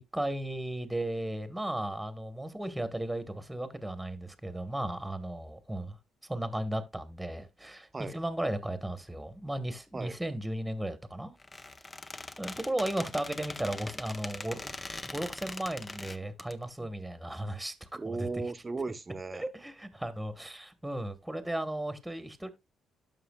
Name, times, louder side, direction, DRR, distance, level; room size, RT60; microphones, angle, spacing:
voice 1, 0.0-6.0 6.3-11.3 12.4-14.8 15.0-18.3 19.3-22.5, right 1 dB, 5° right, 1.2 m, -35 dB
Squeak, 11.4-16.5, left 2 dB, 20° left, 0.6 m, -42 dB
voice 2, 17.9-19.5, right 3 dB, 25° right, 0.8 m, -36 dB
13.0 x 5.6 x 2.3 m
cardioid pair, 90°, 0 cm